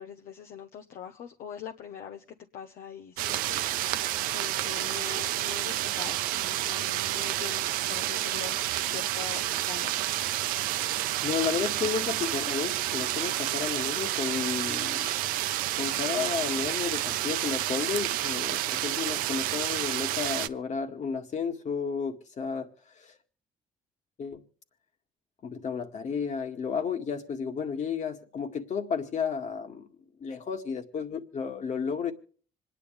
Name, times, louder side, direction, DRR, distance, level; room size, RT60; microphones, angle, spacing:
voice 1, 0.0-2.2 2.5-8.6 8.9-10.1, left 9 dB, 75° left, 1.0 m, -43 dB
sound 1, 3.2-20.5, right 14 dB, 90° right, 0.6 m, -30 dB
voice 2, 10.8-15.1 15.8-22.7 23.0-23.1 24.2-24.4 25.4-29.9 30.2-32.1, left 6 dB, 55° left, 2.1 m, -32 dB
26.5 x 10.0 x 3.5 m
supercardioid pair, 70°, 14 cm